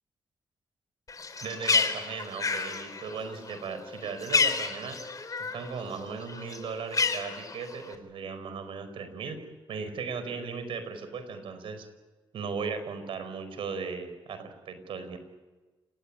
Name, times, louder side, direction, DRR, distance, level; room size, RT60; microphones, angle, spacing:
Bird, 1.1-5.7 6.0-7.9, left 4 dB, 40° left, 4.0 m, -29 dB
voice 1, 1.4-5.0 5.5-9.4 9.7-11.9 12.3-15.2, right 5 dB, 80° right, 10 dB, 4.8 m, -37 dB
29.5 x 19.0 x 8.9 m, 1.2 s
cardioid pair, 70°, 9 cm